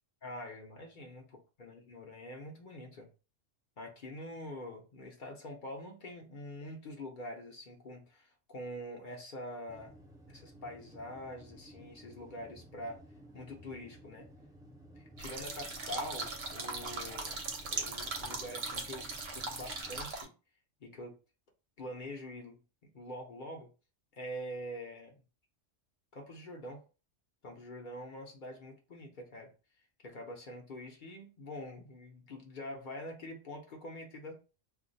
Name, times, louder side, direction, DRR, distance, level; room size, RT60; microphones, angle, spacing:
voice 1, 0.2-3.1 3.8-10.0 10.3-13.0 13.3-14.3 15.0-20.3 20.8-21.2 21.8-22.6 22.9-23.7 24.1-25.2 26.1-26.9 27.4-29.5 30.0-34.3, left 1 dB, 45° left, 0.8 m, -45 dB
sound 1, 9.7-20.1, equal, 5° right, 0.5 m, -55 dB
sound 2, 15.2-20.3, right 3 dB, 60° right, 0.9 m, -39 dB
2.5 x 2.3 x 3.9 m
omnidirectional pair, 1.3 m